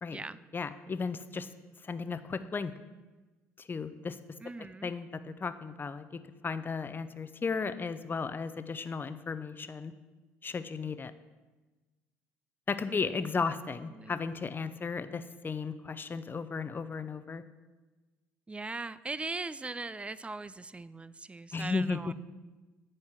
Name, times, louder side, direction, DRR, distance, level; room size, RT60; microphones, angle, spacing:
voice 1, 0.5-1.5 1.8-2.7 3.6-4.2 4.8-6.1 6.4-9.9 10.4-11.1 12.7-17.4 21.5-22.1, left 5 dB, 30° left, 12 dB, 0.7 m, -35 dB
voice 2, 4.4-4.9 12.9-13.6 13.9-14.1 18.5-22.1, right 3 dB, 15° right, 17 dB, 0.4 m, -40 dB
9.8 x 4.4 x 7.3 m, 1.2 s
hypercardioid pair, 60°, 7 cm